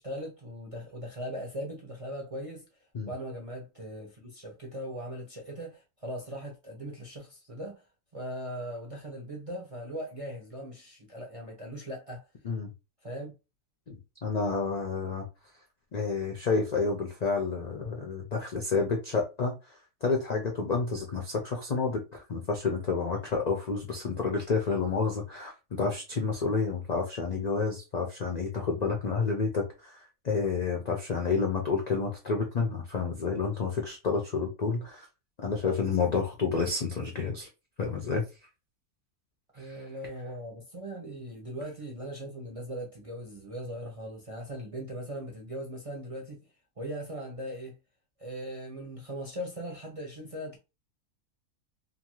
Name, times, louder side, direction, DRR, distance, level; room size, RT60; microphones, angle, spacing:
voice 1, 0.0-2.7 3.1-7.8 8.1-12.2 13.0-13.3 39.5-46.5 46.8-47.8 48.2-50.6, equal, 45° right, 0.4 m, -39 dB
voice 2, 13.9-15.2 15.9-19.7 20.0-35.1 35.4-37.5 37.8-38.2 39.6-39.8, left 4 dB, 75° left, 0.3 m, -30 dB
2.6 x 2.5 x 2.9 m
omnidirectional pair, 1.5 m